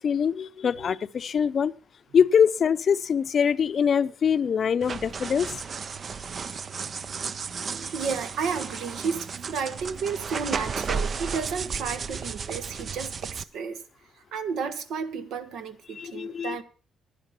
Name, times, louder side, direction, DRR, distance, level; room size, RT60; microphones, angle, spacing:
voice 1, 0.0-1.7 2.1-5.5 16.0-16.6, left 7 dB, 50° left, 0.5 m, -23 dB
sound 1, 4.8-13.4, right 5 dB, 45° right, 0.5 m, -34 dB
voice 2, 6.1-6.6 7.5-13.8 14.1-16.6, right 5 dB, 80° right, 1.2 m, -33 dB
10.5 x 10.0 x 5.7 m
cardioid pair, 90°, 0 cm